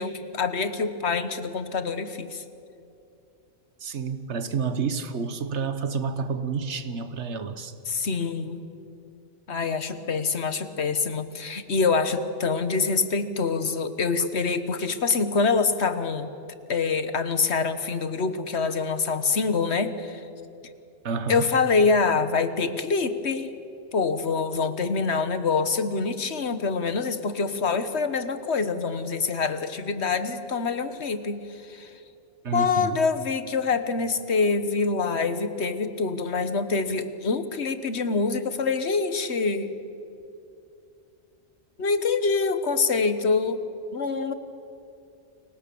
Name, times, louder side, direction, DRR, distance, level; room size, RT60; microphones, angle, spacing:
voice 1, 0.0-2.4 7.9-8.6 9.5-16.3 16.7-20.2 21.3-23.5 23.9-31.9 32.5-39.7 41.8-43.6 43.9-44.3, left 4 dB, 70° left, 11 dB, 1.6 m, -25 dB
voice 2, 3.8-7.7 14.2-14.3 21.0-21.4 32.4-33.0, right 5 dB, 80° right, 11 dB, 1.5 m, -29 dB
30.0 x 23.5 x 7.0 m, 2.7 s
omnidirectional pair, 1.2 m